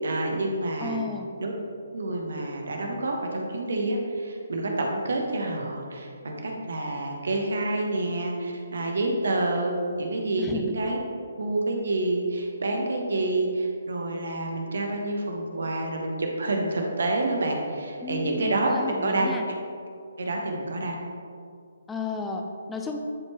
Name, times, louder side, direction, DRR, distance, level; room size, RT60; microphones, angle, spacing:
voice 1, 0.0-1.0 1.4-1.5 1.9-11.0 11.4-19.3 20.2-20.9, right 2 dB, 60° right, 1 dB, 1.1 m, -28 dB
voice 2, 0.8-1.3 10.4-10.7 18.0-19.5 21.9-23.0, left 3 dB, 10° left, 2 dB, 0.5 m, -33 dB
11.0 x 4.4 x 3.0 m, 2.4 s
figure-of-eight pair, 135°, 0 cm